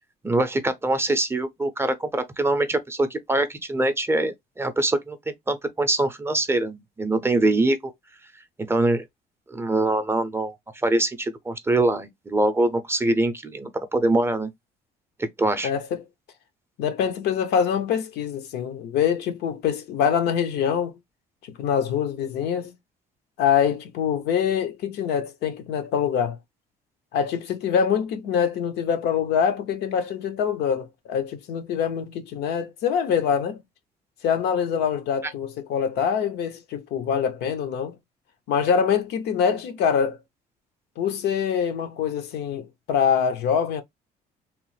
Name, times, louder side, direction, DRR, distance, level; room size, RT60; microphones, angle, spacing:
voice 1, 0.2-7.9 8.6-9.0 9.5-10.5 10.8-14.5 15.2-15.7, right 2 dB, 15° right, 0.5 m, -23 dB
voice 2, 15.6-16.0 16.8-21.0 21.6-22.7 23.4-26.4 27.1-33.6 34.2-37.9 38.5-40.2 41.0-43.8, left 7 dB, 80° left, 0.6 m, -24 dB
3.0 x 2.0 x 3.2 m
cardioid pair, 110°, 17 cm